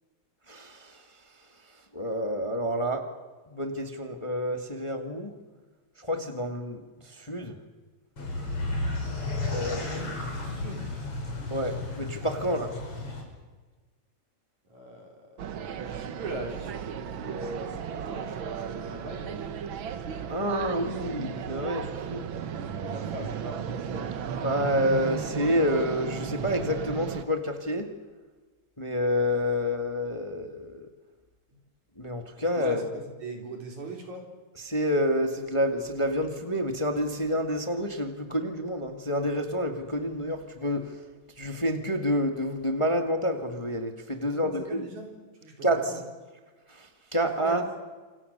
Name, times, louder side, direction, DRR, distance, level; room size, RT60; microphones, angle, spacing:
voice 1, 0.5-1.1 1.9-3.0 3.5-5.3 6.0-7.6 9.5-10.1 11.5-12.7 20.3-22.3 24.4-27.9 28.8-30.9 32.0-32.8 34.6-41.0 41.4-44.8 45.6-45.9 46.7-47.6, equal, 15° left, 5 dB, 1.4 m, -28 dB
sound 1, 8.2-13.2, left 2 dB, 50° left, 6.4 m, -33 dB
voice 2, 9.6-10.1 10.4-10.9 14.7-19.4 22.3-24.1 31.5-31.6 32.6-34.3 44.3-45.1 45.4-46.0 47.4-47.6, right 2 dB, 75° right, 2 dB, 5.8 m, -40 dB
sound 2, 15.4-27.2, right 8 dB, 60° right, 1.5 m, -35 dB
27.5 x 25.5 x 6.8 m, 1.3 s
omnidirectional pair, 3.3 m